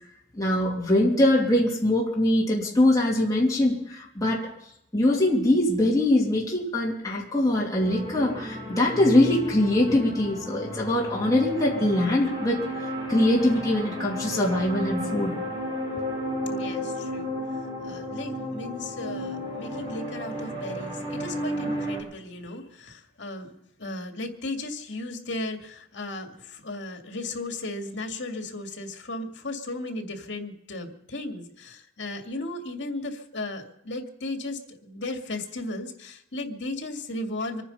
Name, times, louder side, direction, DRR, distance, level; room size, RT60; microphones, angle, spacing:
voice 1, 0.3-4.5 4.9-12.6 13.1-15.4, left 1 dB, 20° left, -4 dB, 2.9 m, -22 dB
sound 1, 7.8-22.0, equal, 30° right, 6.4 m, -33 dB
voice 2, 16.4-37.6, left 2 dB, 70° left, 4 dB, 2.2 m, -36 dB
25.0 x 10.0 x 5.5 m, 0.75 s
head